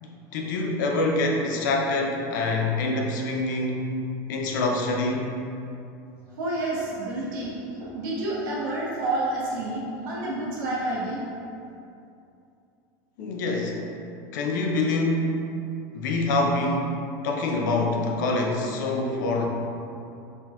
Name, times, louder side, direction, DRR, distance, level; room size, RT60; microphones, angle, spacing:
voice 1, 0.0-3.9 4.3-5.3 13.2-13.8 14.3-15.4 15.9-16.9 17.2-19.5, left 2 dB, 85° left, 0 dB, 0.5 m, -25 dB
voice 2, 6.4-11.2, right 2 dB, 80° right, -6 dB, 1.0 m, -29 dB
4.3 x 2.3 x 2.7 m, 2.6 s
supercardioid pair, 130°, 10 cm